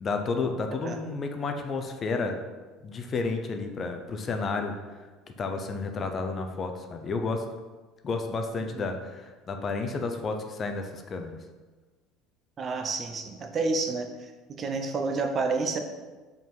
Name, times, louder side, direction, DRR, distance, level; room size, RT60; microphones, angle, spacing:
voice 1, 0.0-2.3 2.8-4.7 5.4-7.4 8.0-11.4, left 4 dB, 30° left, 5 dB, 0.6 m, -31 dB
voice 2, 12.6-14.1 14.5-15.8, right 3 dB, 30° right, 5 dB, 0.6 m, -29 dB
5.1 x 3.9 x 5.4 m, 1.3 s
cardioid pair, 130°, 0 cm